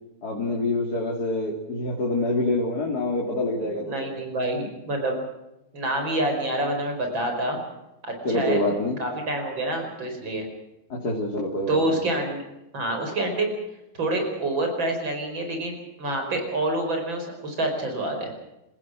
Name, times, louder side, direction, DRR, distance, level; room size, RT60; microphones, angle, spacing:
voice 1, 0.2-4.1 8.2-9.0 10.9-12.0, left 2 dB, 50° left, -1 dB, 3.5 m, -26 dB
voice 2, 3.8-5.2 5.7-7.6 8.0-8.6 9.0-10.5 11.7-12.4 12.7-13.5 14.0-18.3, right 1 dB, 70° right, 3 dB, 5.7 m, -27 dB
29.5 x 16.0 x 6.2 m, 0.94 s
omnidirectional pair, 2.2 m